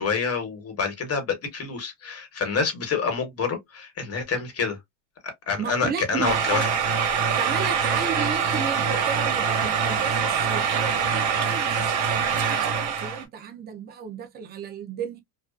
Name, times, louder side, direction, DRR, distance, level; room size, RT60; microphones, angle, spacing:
voice 1, 0.0-4.8 5.5-6.7, left 5 dB, 30° left, 1.2 m, -27 dB
voice 2, 5.6-6.6 7.4-15.2, right 7 dB, 20° right, 0.5 m, -34 dB
sound 1, 6.2-13.2, right 6 dB, 70° right, 1.0 m, -24 dB
2.3 x 2.3 x 2.3 m
supercardioid pair, 115°, 48 cm